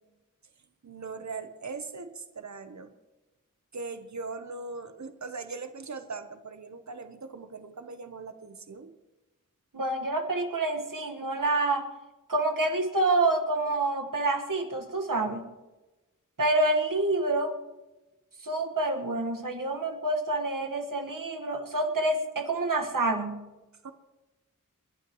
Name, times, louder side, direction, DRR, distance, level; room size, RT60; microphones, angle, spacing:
voice 1, 0.8-2.9 3.7-8.9 23.8-23.9, right 4 dB, 60° right, 9 dB, 1.0 m, -40 dB
voice 2, 9.7-11.9 12.3-15.4 16.4-17.5 18.4-23.4, right 2 dB, 90° right, 4 dB, 1.6 m, -27 dB
30.0 x 11.5 x 3.1 m, 1.1 s
wide cardioid pair, 60°, 32 cm